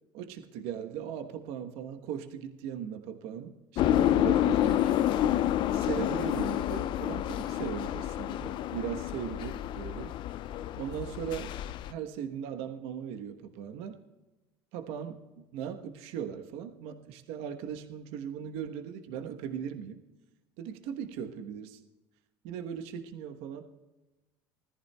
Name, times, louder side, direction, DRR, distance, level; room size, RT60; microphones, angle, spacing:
voice 1, 0.1-4.9 5.7-10.1 10.8-11.6 11.9-14.0 14.7-20.0 20.6-21.8 22.4-23.7, right 8 dB, 70° right, 6 dB, 1.1 m, -38 dB
sound 1, 3.8-11.9, left 12 dB, 50° left, 0.3 m, -29 dB
20.0 x 14.0 x 2.3 m, 1.1 s
supercardioid pair, 95°, 11 cm